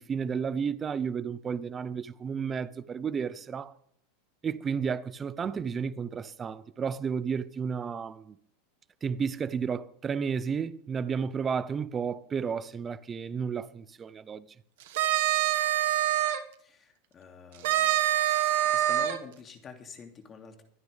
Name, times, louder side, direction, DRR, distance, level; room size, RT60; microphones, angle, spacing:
voice 1, 0.0-3.7 4.4-8.4 9.0-14.5, right 6 dB, 20° right, 0.7 m, -32 dB
sound 1, 14.8-16.4 17.6-19.2, right 13 dB, 70° right, 1.7 m, -25 dB
voice 2, 16.6-17.9 18.5-20.6, left 6 dB, 25° left, 2.7 m, -47 dB
24.5 x 9.6 x 3.5 m
supercardioid pair, 145°, 0 cm